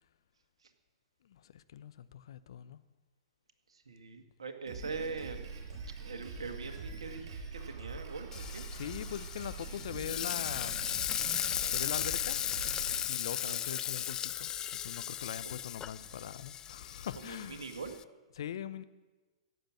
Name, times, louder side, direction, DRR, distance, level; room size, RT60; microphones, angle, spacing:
voice 1, 1.2-2.8 8.7-10.8 11.7-12.4 13.0-14.5 14.8-17.7 18.4-18.8, left 10 dB, 60° left, 13 dB, 0.7 m, -42 dB
voice 2, 3.7-5.6 6.0-8.6 13.3-13.6 15.4-15.6 17.2-17.9, right 4 dB, 70° right, 6 dB, 1.7 m, -43 dB
Drum kit, 4.7-13.0, right 4 dB, 50° right, 5.7 m, -44 dB
Frying (food), 8.3-18.0, left 10 dB, 20° left, 0.4 m, -36 dB
15.5 x 7.8 x 8.6 m, 1.2 s
figure-of-eight pair, 105°, 3 cm